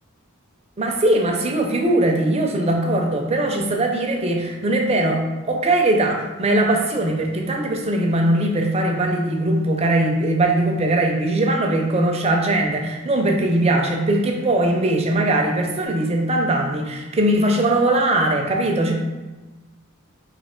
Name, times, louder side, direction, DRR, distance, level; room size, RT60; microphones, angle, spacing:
voice 1, 0.8-5.2 5.5-18.9, right 1 dB, 30° right, 2 dB, 0.5 m, -20 dB
3.2 x 2.7 x 4.3 m, 1.2 s
head